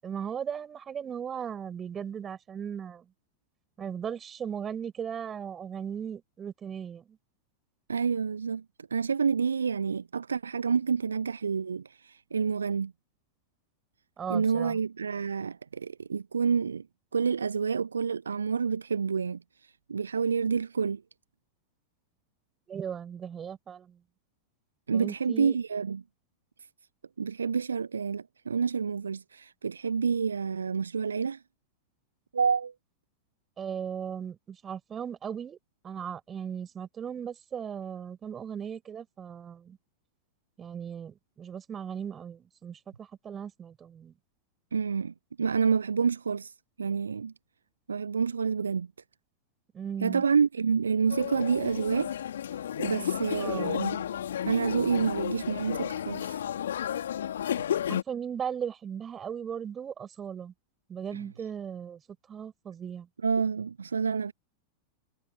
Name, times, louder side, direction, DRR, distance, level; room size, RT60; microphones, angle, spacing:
voice 1, 0.0-3.0 3.8-7.2 14.2-14.8 22.7-24.0 24.9-25.6 33.6-35.6 35.8-39.8 40.6-44.1 49.7-50.2 53.4-53.8 57.9-60.5 60.9-62.0 62.3-63.1, right 8 dB, 25° right, 6.9 m, -37 dB
voice 2, 7.9-8.6 8.9-12.9 14.3-16.8 17.1-19.4 19.9-21.0 24.9-26.0 27.2-31.4 32.3-32.7 44.7-46.5 46.8-47.3 47.9-48.9 50.0-52.1 52.8-54.0 54.5-56.4 61.1-61.2 63.2-64.3, right 6 dB, 75° right, 0.7 m, -28 dB
sound 1, 51.1-58.0, left 10 dB, 65° left, 3.3 m, -32 dB
figure-of-eight pair, 90°, 0 cm